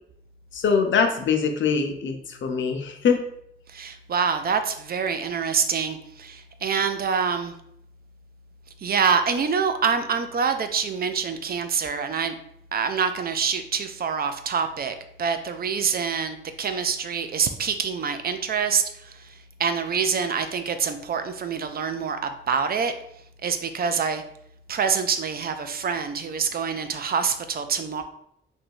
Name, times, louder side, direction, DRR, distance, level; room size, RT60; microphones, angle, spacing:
voice 1, 0.5-3.2, left 5 dB, 75° left, 5 dB, 0.6 m, -23 dB
voice 2, 3.7-7.5 8.8-12.4 12.7-18.8 19.6-22.9 23.4-24.2 24.7-28.0, right 6 dB, 50° right, 8 dB, 0.4 m, -26 dB
3.0 x 2.7 x 4.5 m, 0.72 s
wide cardioid pair, 130°, 20 cm